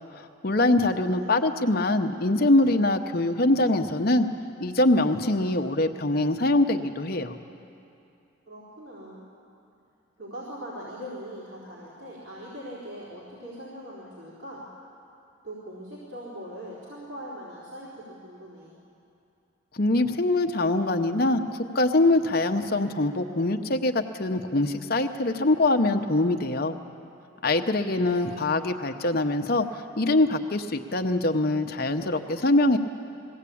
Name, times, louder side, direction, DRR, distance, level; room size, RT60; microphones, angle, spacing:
voice 1, 0.2-4.3 4.6-7.3 19.7-21.4 21.7-26.8 27.4-29.7 30.0-32.8, left 2 dB, 45° left, 6 dB, 0.9 m, -23 dB
voice 2, 0.9-1.5 8.5-9.3 10.2-14.7 15.4-18.8 28.0-28.4, equal, 70° right, -7 dB, 4.2 m, -41 dB
20.5 x 16.5 x 8.6 m, 2.6 s
head